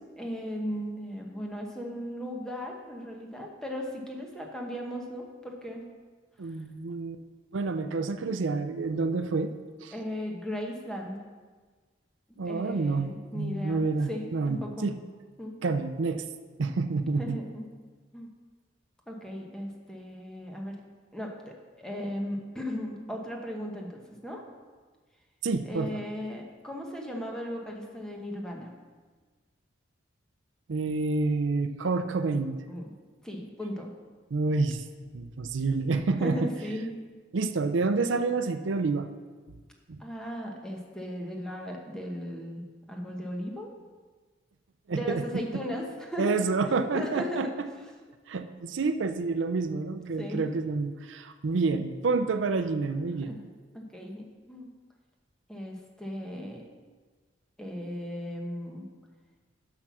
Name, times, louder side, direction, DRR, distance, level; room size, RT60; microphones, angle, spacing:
voice 1, 0.2-5.9 9.9-11.3 12.4-14.9 15.4-15.6 17.2-17.7 18.1-18.3 19.1-20.8 21.1-24.4 25.6-28.7 32.7-32.9 33.2-33.9 36.2-37.0 40.0-43.7 44.9-46.4 46.9-47.9 50.2-50.4 53.3-53.4 53.7-54.7 55.5-56.6 57.6-58.9, equal, 5° left, 0 dB, 1.1 m, -37 dB
voice 2, 6.4-7.2 7.5-9.5 9.8-9.9 12.4-15.0 15.6-16.2 16.6-17.4 25.4-26.0 30.7-32.6 34.3-34.8 35.1-36.4 37.3-39.1 39.9-40.0 44.9-45.2 46.2-47.7 48.3-53.4, right 3 dB, 85° right, 9 dB, 0.5 m, -28 dB
7.7 x 5.9 x 6.1 m, 1.4 s
head